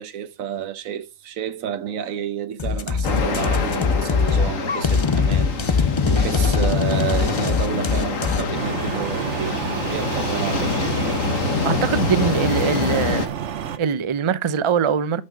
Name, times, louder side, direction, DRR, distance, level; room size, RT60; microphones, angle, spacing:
voice 1, 0.0-11.3, right 9 dB, 90° right, 1.3 m, -30 dB
sound 1, 2.6-8.4, left 5 dB, 35° left, 0.4 m, -21 dB
sound 2, 3.0-13.3, left 4 dB, 75° left, 1.6 m, -26 dB
sound 3, 8.5-13.8, right 9 dB, 65° right, 1.1 m, -29 dB
voice 2, 11.6-13.3 13.8-15.2, right 7 dB, 40° right, 0.4 m, -22 dB
10.0 x 5.5 x 6.5 m
omnidirectional pair, 1.4 m